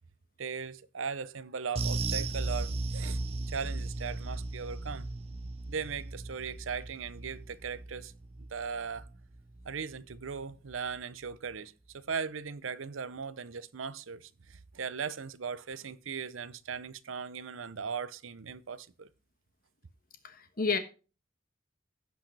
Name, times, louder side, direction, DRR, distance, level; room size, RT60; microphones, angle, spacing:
voice 1, 0.4-5.1 5.7-8.1 8.5-9.1 9.6-19.1, right 6 dB, 85° right, 0.7 m, -38 dB
sound 1, 1.8-10.4 10.7-10.9 11.3-11.4, right 2 dB, 30° right, 0.7 m, -37 dB
voice 2, 20.2-20.8, left 4 dB, 45° left, 1.2 m, -30 dB
16.0 x 6.2 x 3.3 m
head